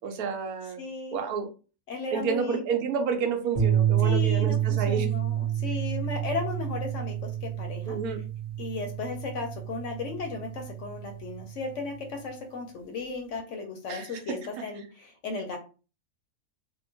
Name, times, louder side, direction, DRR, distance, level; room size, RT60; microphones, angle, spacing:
voice 1, 0.0-0.8 1.1-1.5 2.1-5.1 7.9-8.2 13.9-14.6, right 6 dB, 80° right, 4 dB, 1.1 m, -30 dB
voice 2, 0.8-1.2 1.9-2.6 4.0-8.0 8.6-15.6, left 4 dB, 65° left, 3 dB, 0.8 m, -35 dB
sound 1, 3.5-11.9, right 11 dB, 10° left, 0.5 m, -29 dB
2.8 x 2.1 x 2.7 m, 0.35 s
omnidirectional pair, 1.6 m